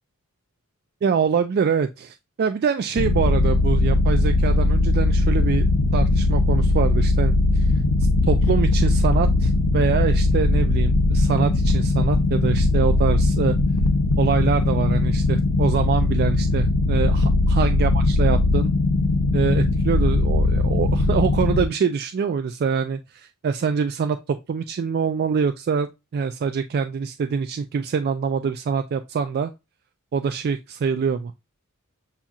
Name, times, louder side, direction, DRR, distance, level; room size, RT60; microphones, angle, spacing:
voice 1, 1.0-5.7 5.9-7.7 8.3-13.6 14.2-18.7 19.3-29.5 30.1-31.3, right 6 dB, 45° right, 0.3 m, -24 dB
sound 1, 3.0-21.6, left 2 dB, 80° left, 0.7 m, -19 dB
7.1 x 2.7 x 2.3 m
head